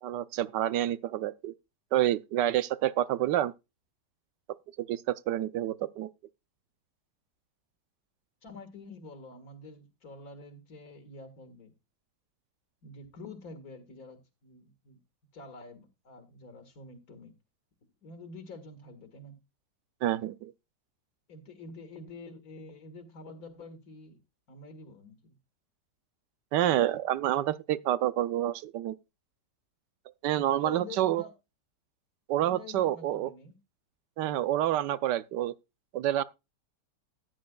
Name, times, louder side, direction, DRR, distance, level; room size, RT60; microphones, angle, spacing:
voice 1, 0.0-1.5 1.9-3.5 4.8-6.1 20.0-20.5 26.5-28.9 30.2-31.2 32.3-33.3 34.2-35.5 35.9-36.2, right 13 dB, 85° right, 1.3 m, -28 dB
voice 2, 8.4-11.7 12.8-15.0 15.3-17.4 17.8-19.4 21.3-24.2 24.5-25.4 30.5-31.3 32.4-33.6, left 3 dB, 60° left, 2.3 m, -47 dB
14.0 x 10.0 x 2.3 m
omnidirectional pair, 1.8 m